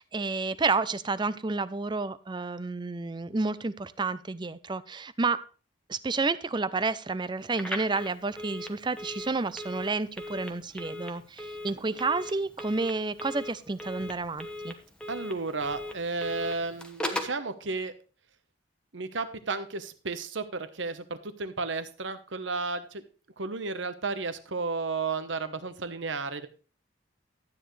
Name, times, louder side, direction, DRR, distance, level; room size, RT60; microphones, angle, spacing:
voice 1, 0.0-5.4 5.9-14.7, right 3 dB, 25° right, 15 dB, 0.5 m, -30 dB
Telephone, 7.5-17.4, left 1 dB, 5° left, 1.2 m, -39 dB
voice 2, 15.1-17.9 18.9-23.0 23.4-26.5, right 3 dB, 75° right, 10 dB, 1.1 m, -33 dB
12.5 x 9.1 x 3.2 m, 0.36 s
head